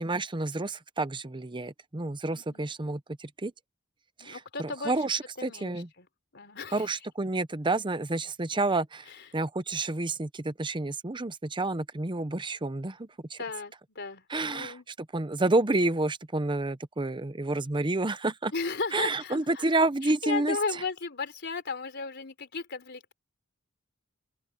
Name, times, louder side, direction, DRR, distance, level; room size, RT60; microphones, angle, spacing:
voice 1, 0.0-3.5 4.2-5.9 6.7-13.4 14.3-14.7 15.1-18.5 18.9-20.6, right 2 dB, 25° right, 0.8 m, -29 dB
voice 2, 2.3-2.7 4.2-5.0 5.4-6.1 6.3-6.9 9.1-9.3 13.4-14.9 18.5-19.7 20.0-23.1, left 4 dB, 55° left, 3.9 m, -35 dB
open air
head